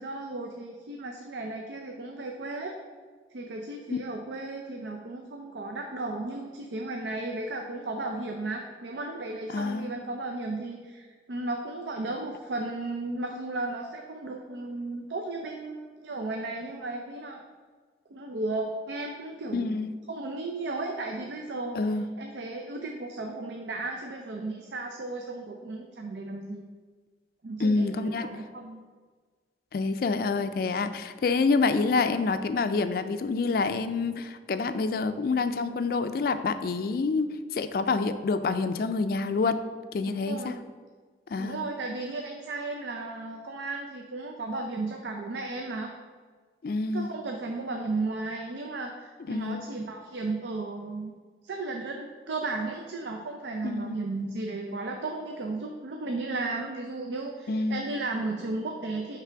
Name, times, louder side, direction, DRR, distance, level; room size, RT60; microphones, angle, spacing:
voice 1, 0.0-2.7 3.3-17.4 18.1-19.7 20.1-21.8 22.2-26.7 27.4-28.8 40.2-40.6 41.4-45.9 46.9-51.1 51.4-59.2, right 2 dB, 80° right, 2 dB, 0.5 m, -34 dB
voice 2, 9.5-9.9 19.5-19.9 21.7-22.1 27.6-28.4 29.7-39.6 39.9-40.5 41.3-41.6 46.6-47.1 49.3-49.6 53.6-54.1 57.5-57.8, left 4 dB, 55° left, 10 dB, 0.3 m, -27 dB
5.8 x 3.4 x 5.7 m, 1.5 s
head